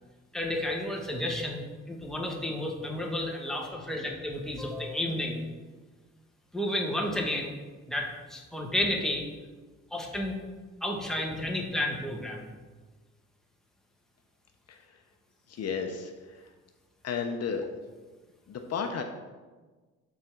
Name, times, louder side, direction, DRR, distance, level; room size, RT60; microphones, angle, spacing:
voice 1, 0.3-5.4 6.5-7.5 7.9-9.3 9.9-10.4 10.8-12.5, left 1 dB, ahead, 0 dB, 1.3 m, -31 dB
voice 2, 14.7-15.0 15.5-16.5 17.0-17.6 18.5-19.0, left 6 dB, 55° left, 5 dB, 0.7 m, -33 dB
5.4 x 4.8 x 5.9 m, 1.3 s
cardioid pair, 90°, 30 cm